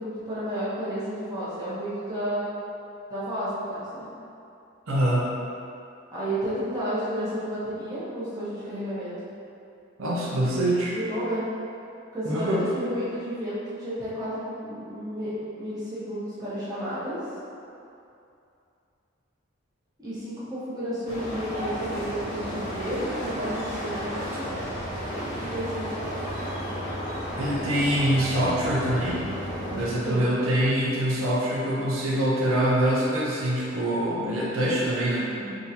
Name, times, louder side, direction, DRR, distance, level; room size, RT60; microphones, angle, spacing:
voice 1, 0.0-2.5 3.1-4.1 6.1-9.1 10.9-11.4 12.1-17.2 20.0-24.6 25.5-26.0 29.6-30.2 35.3-35.5, equal, 20° right, -12 dB, 1.0 m, -32 dB
voice 2, 4.9-5.4 10.0-11.0 12.3-12.7 27.4-29.3 29.8-35.3, right 1 dB, 85° right, -5 dB, 0.6 m, -24 dB
sound 1, 21.1-29.9, equal, 30° left, 0.9 m, -33 dB
3.7 x 2.6 x 2.8 m, 2.6 s
head